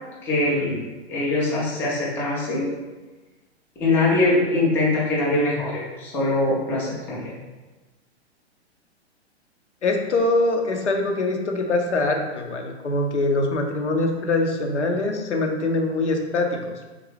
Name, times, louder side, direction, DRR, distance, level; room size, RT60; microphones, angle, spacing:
voice 1, 0.2-2.8 3.8-7.3, left 2 dB, 5° left, -6 dB, 0.3 m, -23 dB
voice 2, 9.8-16.7, left 2 dB, 85° left, 2 dB, 0.6 m, -23 dB
3.7 x 2.2 x 3.0 m, 1.2 s
figure-of-eight pair, 115°, 34 cm